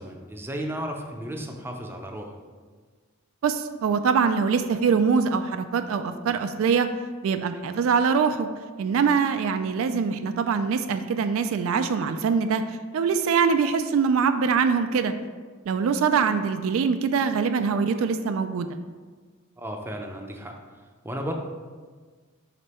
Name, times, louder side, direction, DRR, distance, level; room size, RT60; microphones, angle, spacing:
voice 1, 0.0-2.4 19.6-20.5 21.0-21.3, equal, 10° right, 2 dB, 0.5 m, -34 dB
voice 2, 3.4-6.9 7.2-8.5 8.8-12.6 12.9-15.1 15.7-18.7, right 6 dB, 70° right, 8 dB, 0.3 m, -23 dB
5.1 x 4.4 x 4.3 m, 1.5 s
head